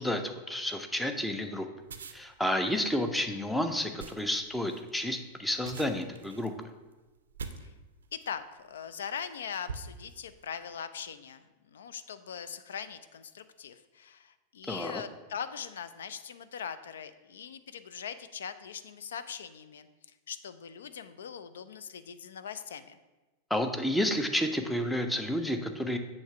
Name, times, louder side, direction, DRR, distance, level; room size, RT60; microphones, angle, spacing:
voice 1, 0.0-1.7 2.1-6.5 14.7-15.0 23.5-26.0, left 1 dB, 5° left, 6 dB, 0.6 m, -30 dB
sound 1, 1.8-8.4 9.1-9.3 9.7-10.4, right 5 dB, 70° right, 0.5 m, -45 dB
voice 2, 8.1-19.9 20.3-23.0, left 7 dB, 65° left, 13 dB, 0.4 m, -41 dB
7.1 x 3.2 x 5.8 m, 1.2 s
figure-of-eight pair, 90°, 0 cm